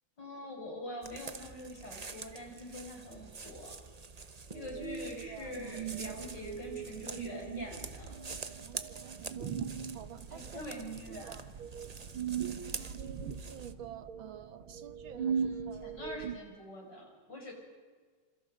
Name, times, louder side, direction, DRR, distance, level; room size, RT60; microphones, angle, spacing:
voice 1, 0.2-3.8 4.5-8.2 10.3-11.4 15.2-17.5, left 1 dB, 55° left, 1 dB, 7.0 m, -44 dB
sound 1, 1.0-13.7, right 4 dB, 40° right, 0.5 m, -47 dB
sound 2, 4.5-16.4, right 7 dB, 90° right, 2.2 m, -40 dB
voice 2, 5.1-5.8 8.6-10.6 11.1-11.5 12.8-13.0 13.4-15.9, right 9 dB, 75° right, 11 dB, 2.1 m, -50 dB
sound 3, 5.6-12.2 12.7-15.9, left 1 dB, 30° left, 7.0 m, -57 dB
27.5 x 27.0 x 5.3 m, 1.6 s
omnidirectional pair, 2.2 m